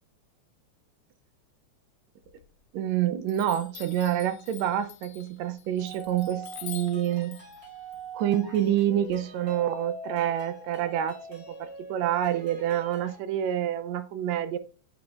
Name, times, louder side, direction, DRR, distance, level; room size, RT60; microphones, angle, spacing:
Chime, 2.2-2.9 3.3-9.1, left 12 dB, 85° left, 1.2 m, -47 dB
voice 1, 2.7-7.4 8.1-14.6, right 11 dB, 75° right, 1.8 m, -27 dB
sound 1, 5.8-13.2, right 2 dB, 30° right, 3.8 m, -43 dB
8.2 x 7.8 x 2.4 m
omnidirectional pair, 3.5 m